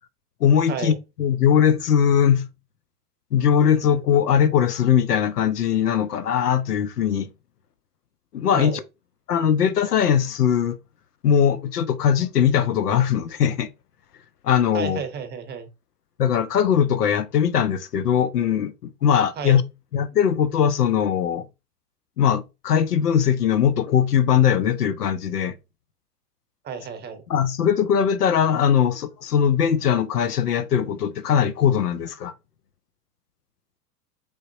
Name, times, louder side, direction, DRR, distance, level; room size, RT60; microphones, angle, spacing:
voice 1, 0.4-2.5 3.3-7.3 8.3-8.8 9.3-10.8 11.2-13.7 14.4-15.0 16.2-19.6 19.9-21.5 22.2-25.6 27.3-32.3, left 8 dB, 80° left, 0.6 m, -20 dB
voice 2, 14.7-15.7 19.4-19.6 26.6-27.2, right 6 dB, 20° right, 0.7 m, -31 dB
3.8 x 3.6 x 2.6 m
figure-of-eight pair, 90°, 46 cm